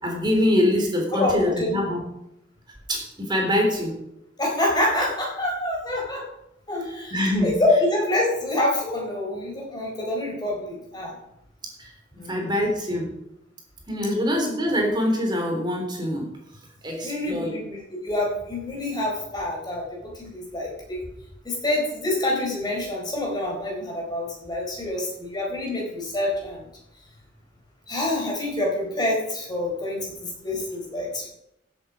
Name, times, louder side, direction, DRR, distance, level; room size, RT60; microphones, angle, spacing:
voice 1, 0.0-2.0 2.9-3.9 7.1-7.5 11.8-11.9 12.3-13.1 13.9-16.3 16.8-17.5, left 1 dB, 25° right, 1 dB, 3.5 m, -24 dB
voice 2, 1.1-1.8 4.4-6.2 6.7-7.2 7.4-11.1 12.1-12.5 17.0-21.0 21.4-26.7 27.9-31.3, left 1 dB, 20° left, -1 dB, 4.3 m, -26 dB
15.0 x 8.3 x 5.0 m, 0.85 s
head